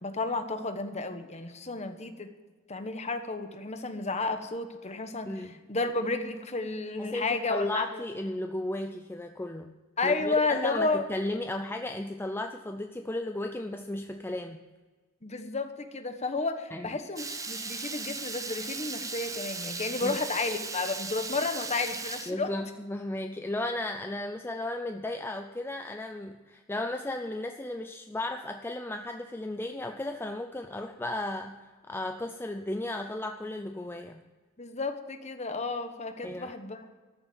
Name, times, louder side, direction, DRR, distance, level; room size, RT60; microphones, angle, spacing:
voice 1, 0.0-2.3 2.7-5.3 5.7-8.0 10.0-11.0 15.2-22.5 34.6-36.9, left 3 dB, 35° left, 7 dB, 1.2 m, -32 dB
voice 2, 7.0-9.7 10.0-14.6 16.7-17.0 20.0-20.2 22.3-34.2 36.2-36.5, left 1 dB, 10° left, 5 dB, 0.5 m, -35 dB
Water tap faucet / Liquid, 17.2-22.3, right 4 dB, 15° right, 0.9 m, -37 dB
13.5 x 7.3 x 9.2 m, 1.4 s
head